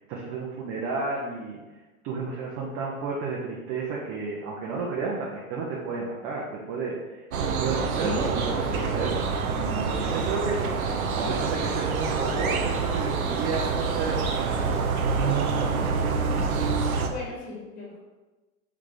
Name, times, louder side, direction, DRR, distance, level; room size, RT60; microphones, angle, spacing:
voice 1, 0.1-1.6 2.0-9.3 9.6-14.9, right 4 dB, 35° right, -3 dB, 0.8 m, -32 dB
sound 1, 7.3-17.1, right 5 dB, 85° right, 0.6 m, -26 dB
voice 2, 7.9-9.3 17.0-18.0, left 3 dB, 20° left, -4 dB, 1.5 m, -36 dB
3.6 x 3.2 x 3.8 m, 1.2 s
figure-of-eight pair, 95°, 42 cm